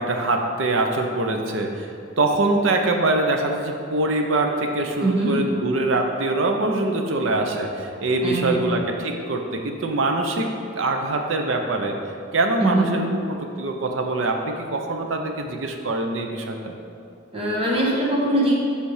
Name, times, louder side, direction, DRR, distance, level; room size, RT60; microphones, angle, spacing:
voice 1, 0.0-10.5 10.7-12.0 12.3-16.7, right 2 dB, 85° right, 3 dB, 0.7 m, -24 dB
voice 2, 5.0-5.3 8.2-8.6 12.6-12.9 17.3-18.5, right 1 dB, 30° right, -4 dB, 1.3 m, -21 dB
7.9 x 3.4 x 4.9 m, 2.5 s
head